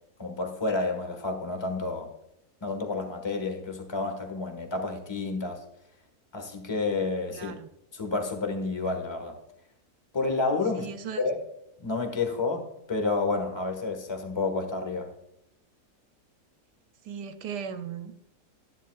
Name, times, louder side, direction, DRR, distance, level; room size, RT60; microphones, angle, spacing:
voice 1, 0.2-2.1 2.6-5.6 6.3-7.5 7.9-9.4 10.1-10.9 11.2-11.4 11.8-15.1, left 3 dB, 15° left, 5 dB, 1.2 m, -30 dB
voice 2, 7.3-7.7 10.7-11.2 17.0-18.1, right 7 dB, 80° right, 8 dB, 1.3 m, -37 dB
13.0 x 10.0 x 2.3 m, 0.79 s
omnidirectional pair, 1.8 m